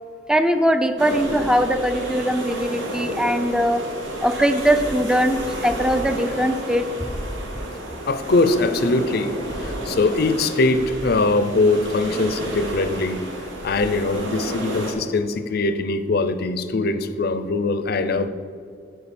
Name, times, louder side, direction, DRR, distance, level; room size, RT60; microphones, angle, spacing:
voice 1, 0.3-3.8 4.2-6.8, equal, 5° right, 8 dB, 0.5 m, -21 dB
sound 1, 1.0-14.9, right 1 dB, 80° right, 1.8 m, -31 dB
voice 2, 8.1-9.3 9.6-13.2 13.6-18.3, left 3 dB, 55° left, 11 dB, 0.6 m, -21 dB
14.0 x 5.0 x 4.3 m, 2.3 s
head